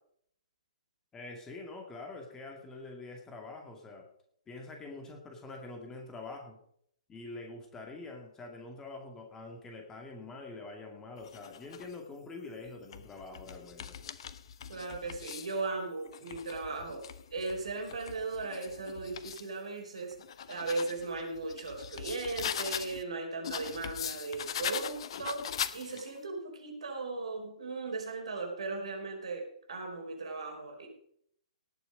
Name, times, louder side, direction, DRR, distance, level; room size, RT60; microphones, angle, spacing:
voice 1, 1.1-4.1 4.5-6.6 7.1-14.0, left 3 dB, 15° left, 2 dB, 2.2 m, -45 dB
sound 1, 11.2-12.0 12.7-15.6 16.1-19.5 20.0-23.0 23.4-26.2, left 8 dB, 50° left, 0.8 m, -41 dB
voice 2, 14.7-17.1 17.3-20.2 20.5-30.9, right 3 dB, 60° right, 2 dB, 4.6 m, -37 dB
18.5 x 7.1 x 5.2 m, 0.68 s
figure-of-eight pair, 120°, 4 cm